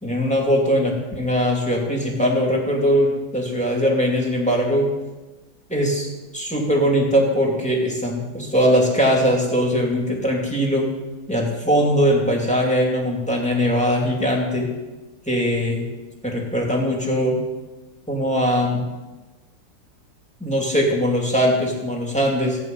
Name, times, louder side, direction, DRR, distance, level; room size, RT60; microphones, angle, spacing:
voice 1, 0.0-4.9 5.7-6.1 6.3-10.9 11.3-14.7 15.3-15.8 16.2-17.4 18.1-18.8 20.4-22.6, equal, 5° left, -1 dB, 2.4 m, -20 dB
15.5 x 9.0 x 5.4 m, 1.2 s
omnidirectional pair, 2.1 m